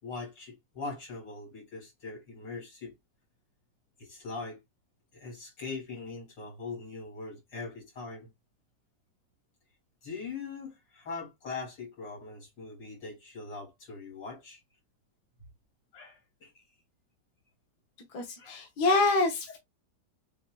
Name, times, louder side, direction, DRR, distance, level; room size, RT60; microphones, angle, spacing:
voice 1, 0.0-2.9 4.0-4.6 5.1-8.3 10.0-14.6 15.9-16.6 18.4-18.6 18.8-19.0, left 4 dB, 90° left, 3.2 m, -41 dB
voice 2, 18.1-19.6, left 3 dB, 65° left, 1.6 m, -26 dB
7.3 x 2.5 x 2.3 m
omnidirectional pair, 1.9 m